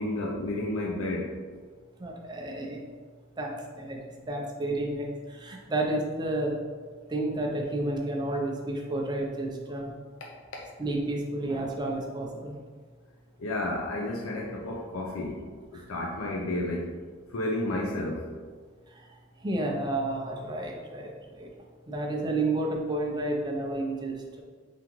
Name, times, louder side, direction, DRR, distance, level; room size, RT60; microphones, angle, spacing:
voice 1, 0.0-1.4 13.4-15.4 15.7-16.9 17.3-18.3, left 1 dB, 80° left, -2 dB, 0.5 m, -31 dB
voice 2, 2.0-2.8 3.4-4.0 4.3-6.6 7.1-9.9 10.8-12.5 15.7-15.8 19.4-21.1 21.4-21.5 21.9-24.4, right 2 dB, 20° right, 0 dB, 0.5 m, -31 dB
3.7 x 3.5 x 3.0 m, 1.5 s
head